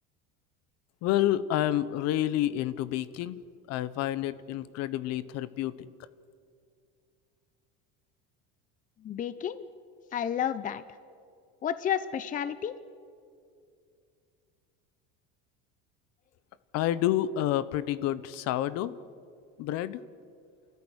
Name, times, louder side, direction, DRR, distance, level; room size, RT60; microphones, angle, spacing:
voice 1, 1.0-3.4 3.7-5.9 16.7-18.9 19.6-20.0, left 13 dB, 55° left, 16 dB, 1.0 m, -29 dB
voice 2, 9.0-9.6 10.1-10.8 11.6-12.7, left 9 dB, 25° left, 14 dB, 0.7 m, -31 dB
29.0 x 14.5 x 9.8 m, 2.4 s
cardioid pair, 135°, 30 cm